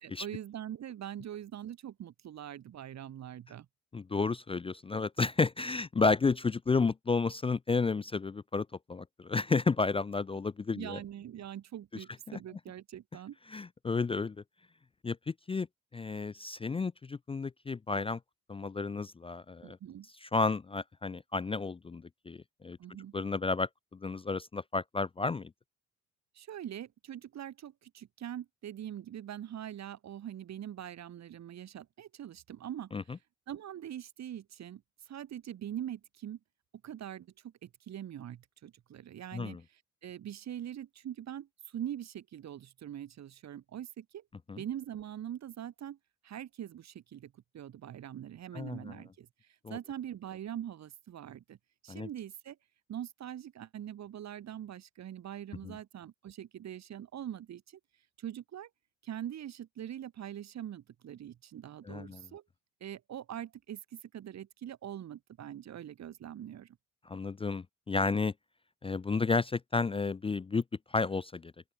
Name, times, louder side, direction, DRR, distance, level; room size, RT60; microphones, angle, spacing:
voice 1, 0.0-3.7 10.7-13.4 19.6-20.1 22.8-23.1 26.3-33.0 33.5-36.4 36.8-44.2 44.6-46.0 46.2-49.3 49.7-51.6 51.8-52.6 52.9-57.8 58.2-58.7 59.0-62.4 62.8-66.8, right 10 dB, 60° right, 2.0 m, -43 dB
voice 2, 3.9-11.0 12.3-12.4 13.5-14.4 15.0-15.7 15.9-18.2 18.5-19.8 20.2-22.8 23.1-25.5 32.9-33.0 39.3-39.6 44.5-44.6 48.5-49.0 49.6-49.8 51.9-52.1 55.6-55.7 61.9-62.2 67.1-68.3 68.8-70.6 70.9-71.5, left 4 dB, 20° left, 0.4 m, -32 dB
open air
cardioid pair, 90°, 30 cm